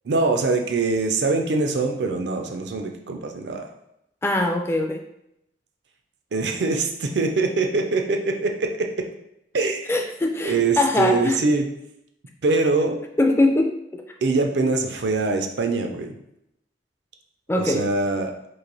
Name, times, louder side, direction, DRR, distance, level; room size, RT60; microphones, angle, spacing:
voice 1, 0.0-3.7 6.3-9.1 9.5-9.9 10.4-11.7 12.4-13.0 14.2-16.2 17.5-18.3, right 3 dB, 65° right, 4 dB, 0.5 m, -23 dB
voice 2, 4.2-5.0 9.9-11.4 13.2-14.0 17.5-17.9, left 2 dB, 15° left, 3 dB, 0.3 m, -22 dB
3.2 x 2.5 x 3.9 m, 0.82 s
head